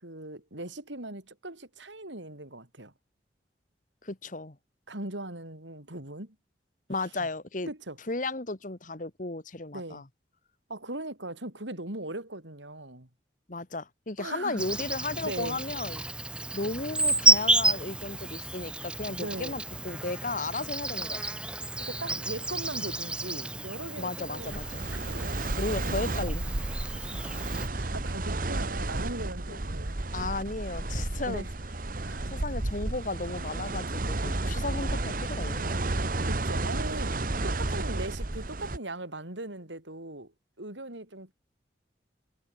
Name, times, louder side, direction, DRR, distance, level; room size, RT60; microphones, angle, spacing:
voice 1, 0.0-2.9 4.9-6.4 7.2-7.3 7.7-8.0 9.7-10.0 10.7-13.1 14.2-14.6 15.2-15.6 19.1-19.6 21.8-24.7 25.1-25.5 26.8-27.4 27.7-30.0 31.2-31.5 32.0-32.4 36.0-37.1 37.4-40.3 40.6-41.3, right 2 dB, 90° right, 5.9 m, -39 dB
voice 2, 4.0-4.6 6.9-7.7 8.1-10.0 13.5-16.0 16.5-21.2 24.0-24.8 25.6-26.4 29.5-29.6 30.1-31.4 32.3-36.0, left 2 dB, 45° left, 1.7 m, -34 dB
Insect, 14.6-27.7, right 2 dB, 5° right, 0.5 m, -30 dB
sound 1, 24.4-38.8, right 2 dB, 50° right, 1.4 m, -32 dB
head